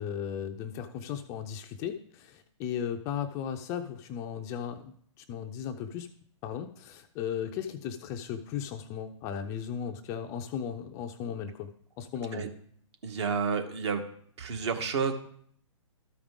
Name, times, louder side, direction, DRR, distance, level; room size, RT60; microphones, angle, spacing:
voice 1, 0.0-6.1 6.4-11.7 12.0-12.5, left 8 dB, 20° left, 7 dB, 0.3 m, -36 dB
voice 2, 13.0-14.1 14.4-15.1, right 5 dB, 60° right, 7 dB, 1.3 m, -30 dB
13.0 x 5.0 x 3.6 m, 0.62 s
hypercardioid pair, 140°, 17 cm